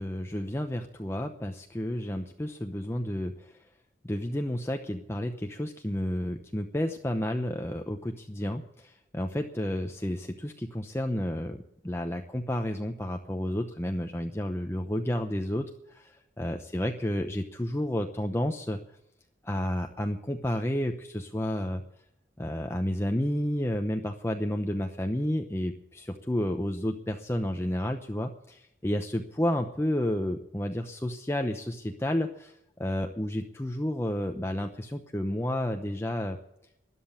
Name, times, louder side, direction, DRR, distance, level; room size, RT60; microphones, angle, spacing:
voice 1, 0.0-3.5 4.0-18.8 19.4-21.8 22.4-36.4, left 1 dB, 15° left, 4 dB, 0.8 m, -31 dB
13.0 x 11.0 x 8.3 m, 0.80 s
head